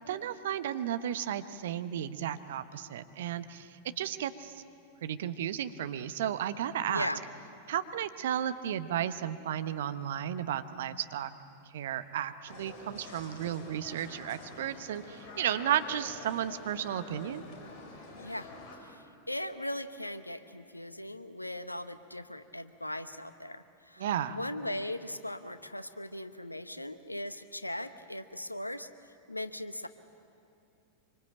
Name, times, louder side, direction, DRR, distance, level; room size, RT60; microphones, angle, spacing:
voice 1, 0.1-4.6 5.0-7.1 7.7-11.3 11.7-17.4 24.0-24.4, right 10 dB, 60° right, 11 dB, 1.1 m, -33 dB
voice 2, 6.9-7.2 18.1-18.5 18.8-28.9 29.3-29.9, left 1 dB, 85° left, 12 dB, 1.0 m, -39 dB
sound 1, 12.5-18.8, left 3 dB, 40° left, 5.5 m, -47 dB
25.0 x 24.5 x 8.9 m, 2.5 s
figure-of-eight pair, 90°, 0 cm